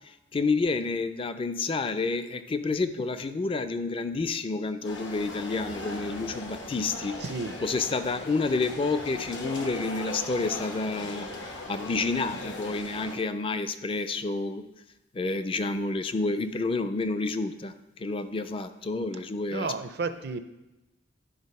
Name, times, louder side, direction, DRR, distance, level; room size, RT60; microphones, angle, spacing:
voice 1, 0.3-7.2 7.6-11.3 11.7-14.7 15.1-19.7, left 3 dB, 30° left, 10 dB, 0.4 m, -29 dB
sound 1, 4.8-13.2, left 2 dB, 75° left, 1.1 m, -39 dB
voice 2, 7.2-7.6 19.5-20.4, right 4 dB, 60° right, 10 dB, 0.5 m, -32 dB
10.0 x 4.0 x 5.3 m, 0.98 s
head